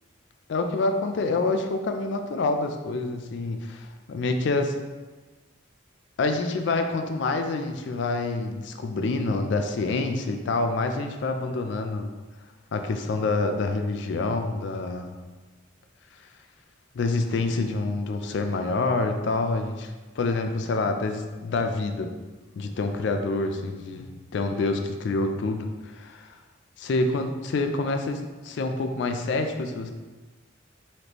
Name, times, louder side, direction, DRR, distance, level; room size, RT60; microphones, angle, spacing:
voice 1, 0.5-4.7 6.2-12.1 12.7-15.1 16.9-22.1 22.6-26.4 26.8-29.9, left 3 dB, 60° left, 6 dB, 0.3 m, -27 dB
4.1 x 3.2 x 2.9 m, 1.2 s
head